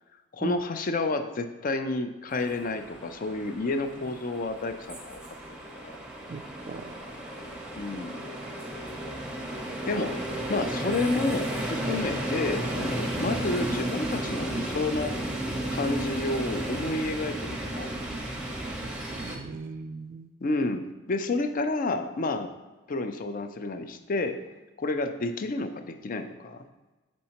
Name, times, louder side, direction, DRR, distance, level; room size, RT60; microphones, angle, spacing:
voice 1, 0.3-5.2 5.8-5.9 7.8-8.2 9.9-15.1 15.7-17.9 20.4-22.5 22.9-24.4 24.8-26.6, left 2 dB, 45° left, 8 dB, 0.4 m, -30 dB
sound 1, 2.3-19.4, right 1 dB, 5° right, 0.8 m, -33 dB
voice 2, 6.3-6.9 18.6-20.3, right 3 dB, 45° right, 9 dB, 0.3 m, -39 dB
6.3 x 5.3 x 2.9 m, 1.1 s
head